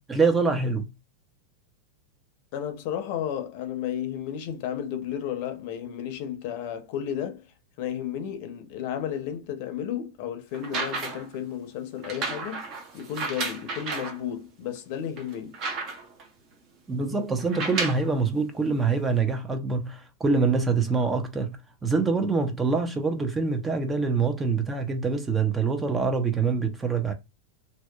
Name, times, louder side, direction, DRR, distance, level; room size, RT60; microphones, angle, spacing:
voice 1, 0.1-0.9 16.9-27.1, right 4 dB, 15° right, 0.4 m, -25 dB
voice 2, 2.5-7.4 7.8-12.7 12.9-15.6, left 9 dB, 55° left, 0.6 m, -33 dB
sound 1, 10.5-11.4 12.0-14.2 14.8-14.9 15.2-16.2 17.4-18.1 19.1-19.2, right 3 dB, 40° right, 0.8 m, -32 dB
2.7 x 2.1 x 2.2 m
hypercardioid pair, 125°, 0 cm